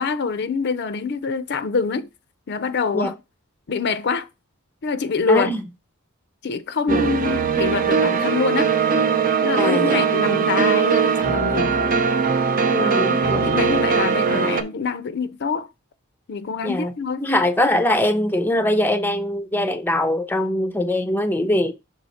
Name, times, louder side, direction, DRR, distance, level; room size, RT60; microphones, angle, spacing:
voice 1, 0.0-2.1 2.5-3.2 3.7-4.3 4.8-5.6 6.4-8.7 9.4-11.7 12.7-15.7 16.3-17.3, left 5 dB, 55° left, 0.5 m, -25 dB
voice 2, 5.3-5.6 6.9-7.0 9.6-10.0 12.7-13.4 16.6-16.9 17.2-21.7, left 1 dB, 10° left, 0.6 m, -22 dB
sound 1, 6.9-14.6, right 6 dB, 40° right, 0.6 m, -20 dB
6.3 x 3.8 x 4.2 m
head